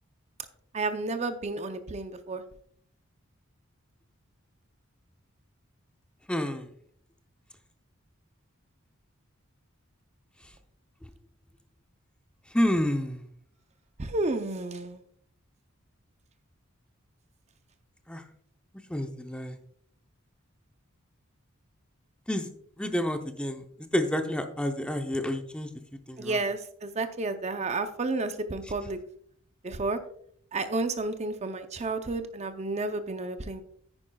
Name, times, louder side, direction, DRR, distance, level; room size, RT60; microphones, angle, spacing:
voice 1, 0.7-2.4 14.0-15.0 26.2-29.0 29.6-30.0 30.5-33.6, right 3 dB, 35° right, 9 dB, 0.6 m, -31 dB
voice 2, 6.3-6.7 12.5-13.3 18.1-18.2 18.9-19.6 22.3-22.5 22.8-25.7 26.1-26.4, left 1 dB, 5° left, 6 dB, 0.6 m, -29 dB
9.8 x 9.6 x 2.3 m, 0.63 s
head